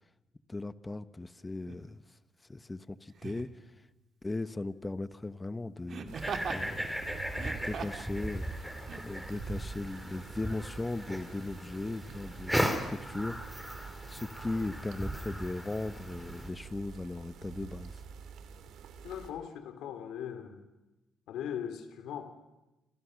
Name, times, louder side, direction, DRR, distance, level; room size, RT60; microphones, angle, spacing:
voice 1, 0.5-2.0 2.5-3.7 4.2-6.2 6.5-7.1 7.6-13.6 14.1-18.0, left 2 dB, 20° left, 13 dB, 1.2 m, -38 dB
Laughter, 1.7-1.8 3.2-3.6 5.9-6.6 7.3-8.1 8.9-9.0, right 6 dB, 55° right, 2.4 m, -39 dB
sound 1, 6.1-16.5, equal, 5° right, 4.2 m, -37 dB
sound 2, 6.1-19.3, right 6 dB, 80° right, 2.6 m, -48 dB
voice 2, 19.0-20.6 21.3-22.3, left 9 dB, 85° left, 8 dB, 3.0 m, -39 dB
28.5 x 27.0 x 6.5 m, 1.1 s
cardioid pair, 90°, 0 cm